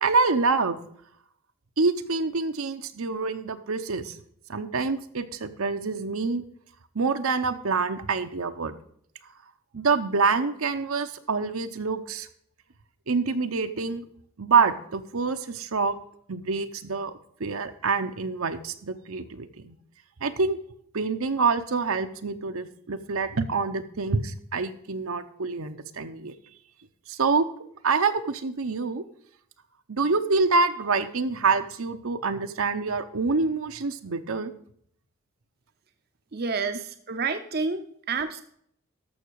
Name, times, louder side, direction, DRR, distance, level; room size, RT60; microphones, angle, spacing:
voice 1, 0.0-0.8 1.8-4.2 4.5-6.4 6.9-8.8 9.7-12.3 13.1-14.0 14.4-16.0 16.3-17.1 17.4-19.8 20.2-20.6 20.9-26.3 27.1-27.5 27.8-29.0 29.9-34.5, right 4 dB, 75° right, 8 dB, 0.8 m, -26 dB
voice 2, 36.3-38.4, right 4 dB, 45° right, 8 dB, 0.6 m, -29 dB
13.5 x 6.0 x 4.7 m, 0.66 s
head